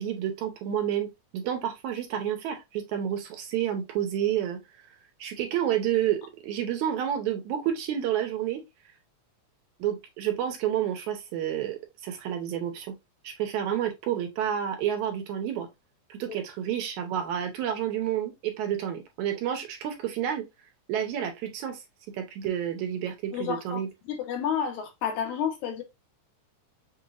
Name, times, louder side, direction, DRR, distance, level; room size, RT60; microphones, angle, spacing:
voice 1, 0.0-4.6 5.2-8.6 9.8-13.0 13.2-15.7 16.1-20.4 20.9-21.8 22.2-23.9, right 10 dB, 80° right, 2.3 m, -30 dB
voice 2, 23.3-23.8 24.1-25.8, left 8 dB, 80° left, 2.4 m, -30 dB
6.1 x 3.0 x 2.5 m
omnidirectional pair, 3.4 m